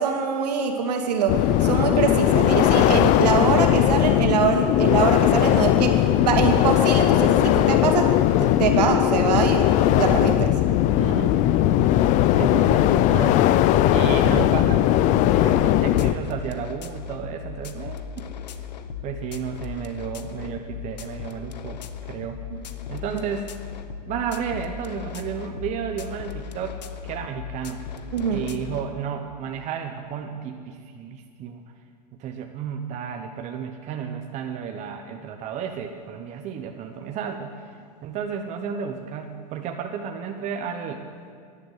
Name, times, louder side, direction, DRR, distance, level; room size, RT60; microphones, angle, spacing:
voice 1, 0.0-8.1 8.4-9.7 10.0-10.5 28.1-28.4, right 6 dB, 75° right, 3 dB, 2.2 m, -23 dB
sound 1, 1.3-16.1, left 13 dB, 35° left, 0.5 m, -19 dB
voice 2, 10.9-11.4 12.3-14.9 15.2-18.3 19.0-22.4 22.9-23.5 24.1-26.8 27.0-27.8 28.3-31.6 32.2-41.0, right 7 dB, 35° right, 4 dB, 1.0 m, -32 dB
sound 2, 15.6-28.9, left 8 dB, 85° left, 0.9 m, -37 dB
12.0 x 11.0 x 8.1 m, 2.1 s
hypercardioid pair, 125°, 21 cm